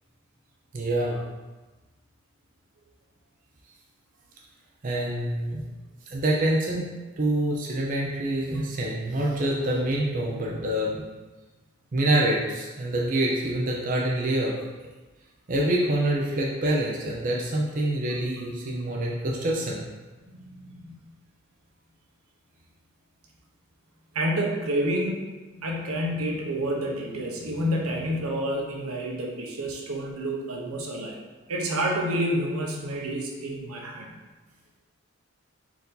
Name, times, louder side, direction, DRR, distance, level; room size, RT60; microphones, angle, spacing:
voice 1, 0.7-1.2 4.8-5.6 6.1-6.9 7.2-11.0 11.9-14.5 15.5-19.8, right 1 dB, 40° right, -3 dB, 0.5 m, -26 dB
voice 2, 24.1-25.2 25.6-31.2 31.5-34.2, right 1 dB, 85° right, 0 dB, 0.7 m, -29 dB
4.4 x 2.6 x 3.8 m, 1.2 s
head